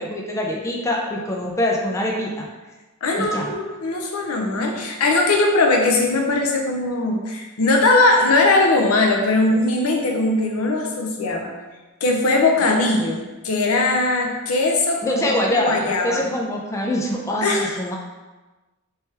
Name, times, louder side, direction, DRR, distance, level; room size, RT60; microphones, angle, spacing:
voice 1, 0.0-2.5 3.2-3.5 15.0-17.9, left 1 dB, 15° left, -1 dB, 0.4 m, -24 dB
voice 2, 3.0-11.5 12.0-16.2 17.4-17.7, left 2 dB, 85° left, 1 dB, 0.6 m, -20 dB
3.4 x 3.0 x 3.2 m, 1.2 s
head